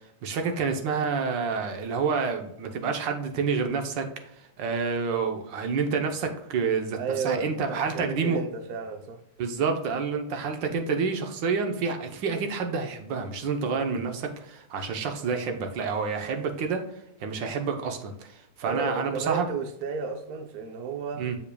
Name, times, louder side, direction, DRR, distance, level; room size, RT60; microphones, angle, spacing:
voice 1, 0.2-4.1 4.4-7.0 7.2-8.4 9.4-19.5 21.2-21.4, right 5 dB, 80° right, 1.6 m, -28 dB
voice 2, 7.0-9.2 18.6-21.3, right 5 dB, 60° right, 1.2 m, -33 dB
7.7 x 6.9 x 2.3 m
omnidirectional pair, 2.0 m